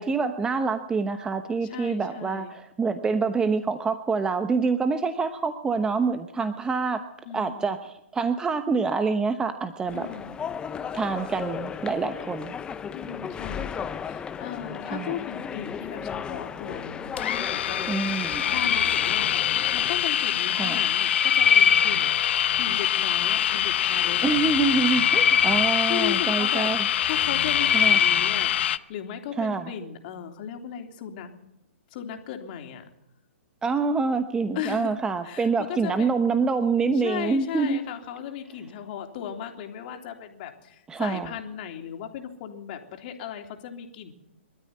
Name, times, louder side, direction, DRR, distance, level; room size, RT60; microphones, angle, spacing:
voice 1, 0.0-7.0 7.3-10.1 10.9-12.6 14.9-15.2 17.9-18.5 20.6-20.8 24.2-26.8 27.7-28.0 29.4-29.7 33.6-37.8 40.9-41.3, right 4 dB, 10° right, 9 dB, 0.9 m, -26 dB
voice 2, 1.6-2.5 7.3-7.7 9.9-10.4 12.9-19.4 19.7-24.2 25.8-26.7 27.0-31.3 31.9-32.8 34.5-35.0 35.2-36.1 36.9-44.1, left 9 dB, 45° left, 3 dB, 3.5 m, -36 dB
sound 1, 9.9-20.0, left 7 dB, 15° left, 0.7 m, -36 dB
sound 2, 17.2-28.8, left 11 dB, 60° left, 0.9 m, -25 dB
sound 3, 18.3-19.7 20.6-22.5 24.5-26.6 27.0-28.6, left 7 dB, 80° left, 1.3 m, -24 dB
24.5 x 13.0 x 9.5 m, 0.87 s
hypercardioid pair, 140°, 7 cm